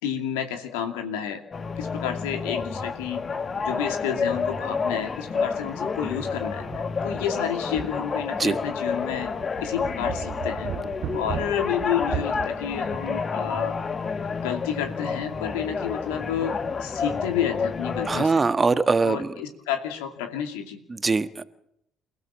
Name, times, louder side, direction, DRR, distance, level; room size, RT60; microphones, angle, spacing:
voice 1, 0.0-1.4 1.8-3.2 3.6-9.3 9.6-10.7 11.1-13.8 14.4-18.3 19.0-20.8, left 9 dB, 70° left, 5 dB, 2.5 m, -30 dB
sound 1, 1.5-18.3, left 5 dB, 35° left, 1.6 m, -30 dB
sound 2, 4.6-4.7 5.1-5.2 6.1-7.5 7.9-8.0 8.5-13.3, right 9 dB, 50° right, 1.6 m, -37 dB
voice 2, 18.1-19.3 20.9-21.4, right 4 dB, 25° right, 11 dB, 1.3 m, -22 dB
29.0 x 16.0 x 7.4 m, 0.76 s
figure-of-eight pair, 50°, 0 cm